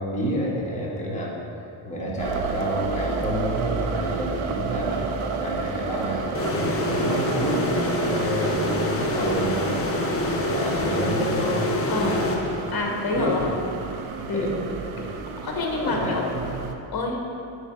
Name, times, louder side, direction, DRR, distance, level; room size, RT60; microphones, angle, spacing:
voice 1, 0.0-1.4 1.8-7.6 8.1-9.8 10.2-12.3 13.1-13.5 14.2-14.5 14.9-15.1 15.7-16.4, equal, 15° left, -5 dB, 1.4 m, -29 dB
sound 1, 2.2-16.7, right 5 dB, 85° right, 0.6 m, -31 dB
sound 2, 6.3-13.0, left 2 dB, 30° left, 0.5 m, -26 dB
voice 2, 12.7-13.5 14.3-14.5 15.0-15.1 15.4-16.3 16.9-17.4, left 3 dB, 45° left, 0 dB, 1.2 m, -27 dB
8.5 x 3.1 x 4.5 m, 2.6 s
cardioid pair, 105°, 50 cm